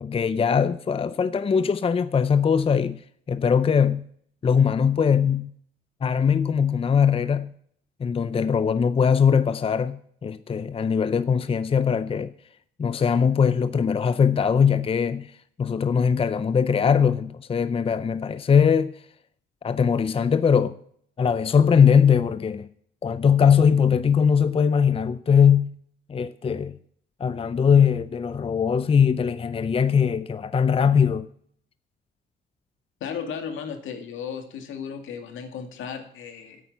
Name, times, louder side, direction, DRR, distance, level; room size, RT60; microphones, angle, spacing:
voice 1, 0.0-3.0 3.3-4.1 4.4-5.5 6.0-7.5 8.0-12.3 12.8-15.3 15.6-18.9 19.6-20.8 21.2-22.7 23.0-25.7 26.1-26.8 27.2-31.3, left 7 dB, 30° left, 0.5 m, -21 dB
voice 2, 33.0-36.6, left 7 dB, 80° left, 2.2 m, -35 dB
10.0 x 8.7 x 8.2 m
cardioid pair, 90°, 20 cm